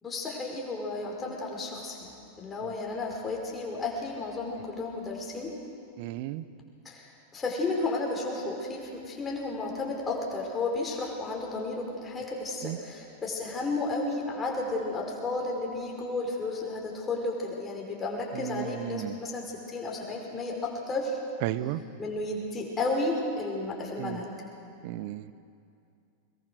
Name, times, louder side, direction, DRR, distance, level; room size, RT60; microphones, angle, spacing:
voice 1, 0.0-5.5 6.9-21.2 22.0-24.3, left 2 dB, 20° left, -1 dB, 5.2 m, -33 dB
voice 2, 6.0-6.4 12.6-12.8 18.3-19.2 21.4-21.8 24.0-24.2 24.8-25.3, right 15 dB, 45° right, 15 dB, 0.8 m, -34 dB
23.5 x 22.0 x 6.5 m, 2.5 s
figure-of-eight pair, 90°, 0 cm